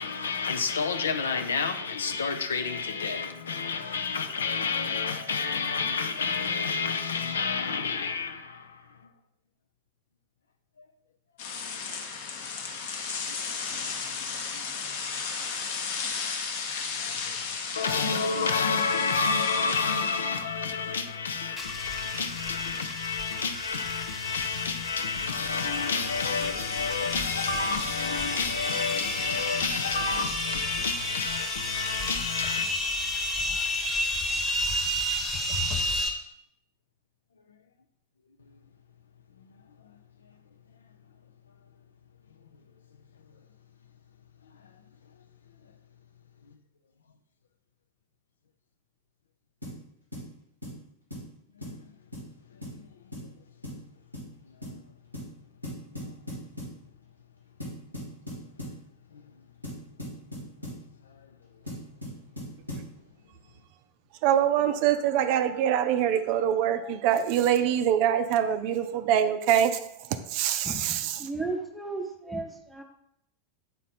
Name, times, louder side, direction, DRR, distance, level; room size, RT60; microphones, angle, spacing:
voice 1, 0.0-9.0 10.8-10.9 13.3-13.4 13.7-13.9 14.5-14.6 15.4-15.8 17.0-32.7 39.4-39.5 39.9-40.0 46.4-46.6 51.5-51.9 52.5-52.9 53.2-53.3 54.5-54.8 56.0-56.1 59.1-59.3 61.0-61.3, left 5 dB, 70° left, 0.5 m, -30 dB
sound 1, 11.4-21.1, left 5 dB, 50° left, 0.9 m, -34 dB
sound 2, 21.6-36.1, left 1 dB, 25° left, 1.2 m, -32 dB
sound 3, 49.6-49.8 50.1-50.3 50.6-50.8 51.1-51.3 51.6-51.8 52.1-52.3 52.6-52.8 53.1-53.3 53.6-53.8 54.1-54.3 54.6-54.8 55.1-55.3 55.6-56.8 57.6-58.8 59.6-60.8 61.7-62.9, equal, 90° left, 2.3 m, -38 dB
voice 2, 64.2-71.2, right 10 dB, 45° right, 0.4 m, -24 dB
voice 3, 70.6-72.8, right 2 dB, 5° right, 0.8 m, -35 dB
8.1 x 4.1 x 4.1 m
figure-of-eight pair, 90°, 0 cm